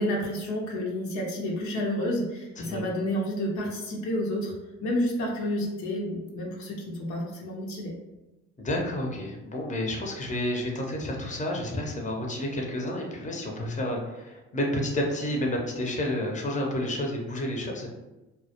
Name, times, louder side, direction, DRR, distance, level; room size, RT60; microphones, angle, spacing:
voice 1, 0.0-4.5 4.8-8.0, left 1 dB, 70° left, -2 dB, 0.6 m, -30 dB
voice 2, 8.6-17.9, left 1 dB, 25° left, 0 dB, 0.7 m, -30 dB
2.1 x 2.1 x 2.8 m, 1.1 s
supercardioid pair, 60°, 30 cm